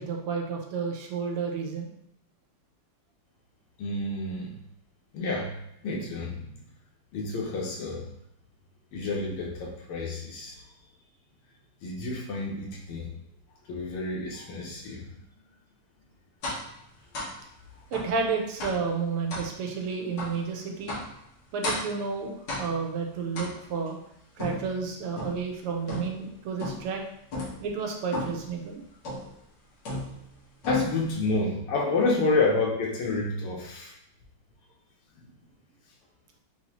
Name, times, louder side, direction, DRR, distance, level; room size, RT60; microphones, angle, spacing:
voice 1, 0.0-1.9 17.9-20.9 21.5-24.0 24.4-27.0 27.6-28.8, right 5 dB, 80° right, 2 dB, 1.6 m, -31 dB
voice 2, 3.8-4.5 5.1-5.5 5.8-6.6 7.1-8.0 8.9-10.6 11.8-13.1 13.7-15.1 17.1-17.3 30.7-33.9, left 3 dB, 80° left, -1 dB, 1.8 m, -29 dB
sound 1, 16.4-16.7 17.1-17.4 17.9-18.1 18.6-18.9 19.3-19.5 20.2-20.4 20.9-21.2 21.6-22.0 22.5-22.9 23.3-23.9 24.4-25.5 25.9-26.3 26.6-27.0 27.3-27.6 28.1-28.5 29.0-29.4 29.8-30.3 30.6-31.1, left 1 dB, 55° left, 1.8 m, -35 dB
5.4 x 2.8 x 2.9 m, 0.75 s
omnidirectional pair, 2.4 m